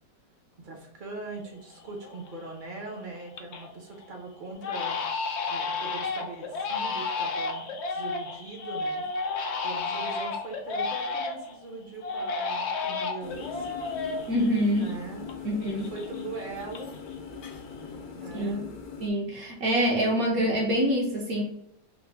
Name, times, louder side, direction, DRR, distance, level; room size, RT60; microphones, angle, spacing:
voice 1, 0.6-5.0 5.5-9.4 9.6-13.8 14.8-15.3 15.7-17.0 18.1-18.7, right 3 dB, 40° right, 1 dB, 0.7 m, -41 dB
Crying sobbing, 1.5-1.6 2.0-2.5 2.9-3.7 4.0-4.2 4.6-11.6 12.0-15.4 15.6-17.1 17.4-18.0, left 4 dB, 85° left, 0.6 m, -32 dB
sound 1, 13.2-19.1, left 6 dB, 70° left, 1.1 m, -41 dB
voice 2, 14.3-14.9 15.4-15.9 18.3-18.6 19.0-21.4, equal, 60° right, -2 dB, 1.2 m, -25 dB
4.1 x 2.2 x 3.4 m, 0.74 s
omnidirectional pair, 1.8 m